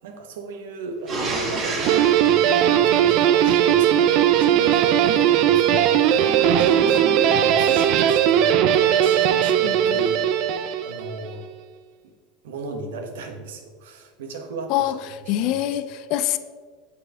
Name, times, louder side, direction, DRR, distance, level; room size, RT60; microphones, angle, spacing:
voice 1, 0.0-8.6 9.0-10.3 10.8-11.5 12.4-15.7, right 4 dB, 80° right, 4 dB, 1.1 m, -35 dB
sound 1, 1.1-3.8 6.2-7.6, right 3 dB, 40° right, 2.1 m, -30 dB
Guitar, 1.9-11.2, right 10 dB, 60° right, 0.5 m, -18 dB
voice 2, 9.6-10.0 14.7-15.0 15.3-16.4, left 13 dB, 60° left, 13 dB, 0.4 m, -24 dB
6.6 x 5.5 x 4.9 m, 1.5 s
supercardioid pair, 105°, 0 cm